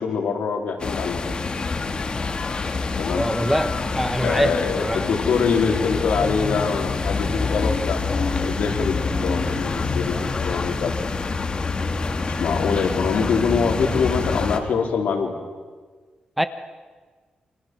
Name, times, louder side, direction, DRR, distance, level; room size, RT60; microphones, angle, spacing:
voice 1, 0.0-1.5 3.0-3.3 4.2-11.0 12.1-15.3, left 5 dB, 90° left, 2 dB, 3.8 m, -24 dB
sound 1, 0.8-14.6, left 4 dB, 35° left, 1.9 m, -26 dB
voice 2, 3.1-5.1 16.4-16.5, equal, ahead, 10 dB, 1.1 m, -24 dB
28.5 x 26.0 x 6.3 m, 1.5 s
wide cardioid pair, 125°, 3 cm